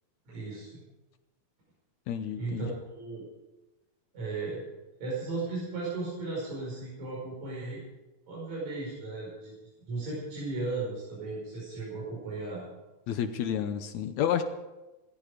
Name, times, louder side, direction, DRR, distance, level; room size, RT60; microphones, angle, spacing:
voice 1, 0.3-0.8 2.4-3.2 4.1-4.6 5.0-7.8 8.3-9.5 9.9-12.6, right 3 dB, 70° right, -6 dB, 6.6 m, -36 dB
voice 2, 2.1-2.7 13.1-14.4, left 9 dB, 75° left, 8 dB, 2.1 m, -30 dB
17.5 x 15.5 x 5.1 m, 1.1 s
omnidirectional pair, 3.4 m